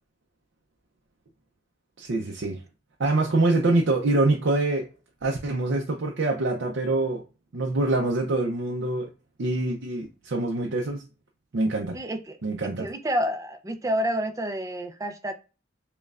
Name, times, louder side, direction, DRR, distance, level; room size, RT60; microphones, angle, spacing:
voice 1, 2.0-2.6 3.0-4.9 5.2-7.2 7.5-9.1 9.4-11.0 11.5-12.0 12.4-12.9, right 2 dB, 65° right, 0.6 m, -25 dB
voice 2, 11.9-12.4 12.8-15.3, equal, 15° right, 0.4 m, -29 dB
5.2 x 2.2 x 2.4 m
head